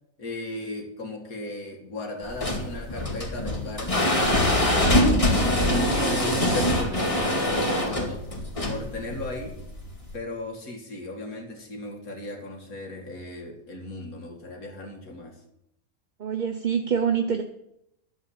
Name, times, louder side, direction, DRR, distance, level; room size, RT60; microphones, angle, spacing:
voice 1, 0.2-8.3 8.7-9.6 10.1-15.4, left 2 dB, 85° left, 2 dB, 2.7 m, -36 dB
sound 1, 2.2-10.1, left 1 dB, 25° left, 2.2 m, -24 dB
voice 2, 16.2-17.4, right 7 dB, 45° right, 6 dB, 0.7 m, -25 dB
11.5 x 8.3 x 7.2 m, 0.81 s
omnidirectional pair, 1.5 m